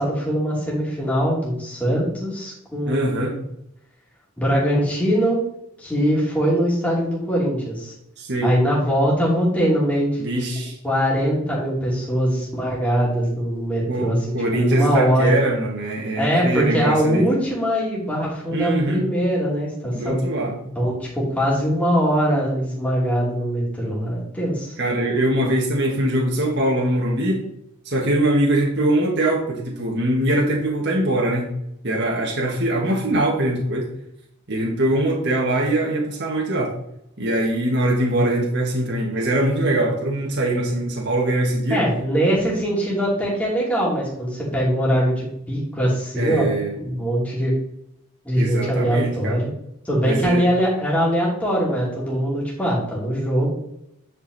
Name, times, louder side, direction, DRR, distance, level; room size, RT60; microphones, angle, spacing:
voice 1, 0.0-3.3 4.4-5.4 5.8-7.9 8.4-10.2 10.8-15.3 16.1-20.2 20.7-24.7 41.7-46.5 46.8-47.5 48.2-49.5 49.8-53.5, equal, 5° left, -6 dB, 2.8 m, -22 dB
voice 2, 2.9-3.3 8.2-8.5 10.2-10.8 13.9-17.2 18.5-19.1 19.9-20.6 24.8-27.4 27.8-31.5 31.8-33.9 34.5-36.7 37.2-41.8 46.2-46.8 48.4-49.4 50.0-50.4, right 1 dB, 50° right, -3 dB, 1.6 m, -22 dB
9.6 x 5.5 x 4.1 m, 0.78 s
head